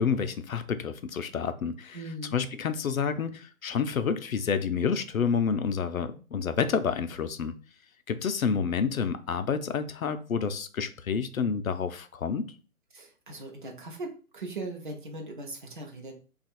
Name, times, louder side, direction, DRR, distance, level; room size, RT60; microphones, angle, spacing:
voice 1, 0.0-2.0 2.3-7.5 8.1-12.5, left 6 dB, 70° left, 9 dB, 0.6 m, -29 dB
voice 2, 1.9-2.4 12.9-16.1, right 2 dB, 35° right, 2 dB, 0.7 m, -39 dB
2.8 x 2.4 x 4.2 m, 0.37 s
figure-of-eight pair, 145°, 43 cm